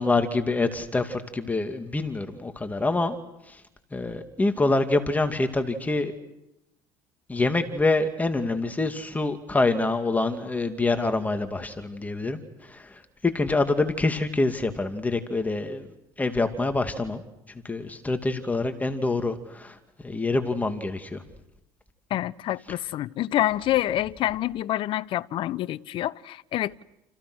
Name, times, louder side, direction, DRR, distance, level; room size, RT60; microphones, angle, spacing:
voice 1, 0.0-3.2 3.5-3.6 3.9-6.1 7.3-15.9 16.2-17.2 17.6-19.8 20.0-21.2, left 2 dB, 15° left, 2.6 m, -26 dB
voice 2, 22.1-26.8, left 13 dB, 55° left, 0.9 m, -27 dB
29.5 x 29.5 x 6.4 m
supercardioid pair, 90°, 10 cm